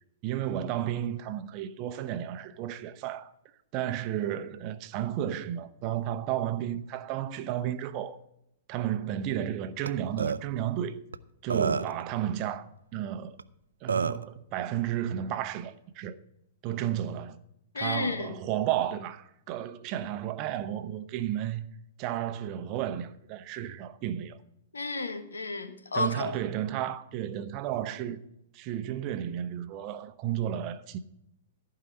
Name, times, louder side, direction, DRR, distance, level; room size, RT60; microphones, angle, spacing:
voice 1, 0.2-3.3 3.7-8.2 8.7-11.0 11.4-12.7 12.9-13.4 13.8-16.2 16.6-17.4 17.8-21.7 22.0-24.4 25.9-28.3 28.5-31.0, right 11 dB, 40° right, 0.9 m, -32 dB
Burping eructation, 9.9-10.0 10.2-10.4 11.1-11.2 11.5-12.0 13.4-13.5 13.9-14.3, right 5 dB, 80° right, 0.5 m, -28 dB
voice 2, 17.7-18.4 24.7-26.3, left 3 dB, 85° left, 1.4 m, -32 dB
14.5 x 4.9 x 7.7 m
hypercardioid pair, 115°, 0 cm